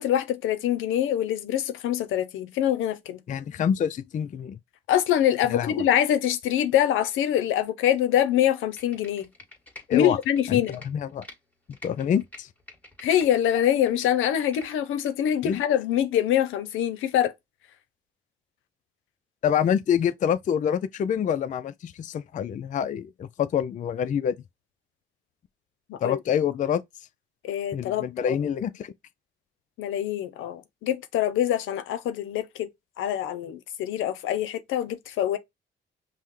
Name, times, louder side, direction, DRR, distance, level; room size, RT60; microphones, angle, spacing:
voice 1, 0.0-3.2 4.9-9.3 9.9-10.8 13.0-17.3 25.9-26.2 27.5-28.3 29.8-32.7 33.0-35.4, left 11 dB, 85° left, 0.6 m, -24 dB
voice 2, 3.3-4.6 5.5-5.8 9.9-10.2 10.5-11.2 11.8-12.5 15.4-15.6 19.4-24.4 26.0-26.8 27.7-28.9, left 8 dB, 40° left, 0.4 m, -26 dB
Computer keyboard, 8.6-11.4 11.7-13.4 13.7-15.1 15.5-15.6, left 2 dB, 10° left, 1.8 m, -47 dB
5.5 x 2.1 x 3.1 m
cardioid pair, 90°, 20 cm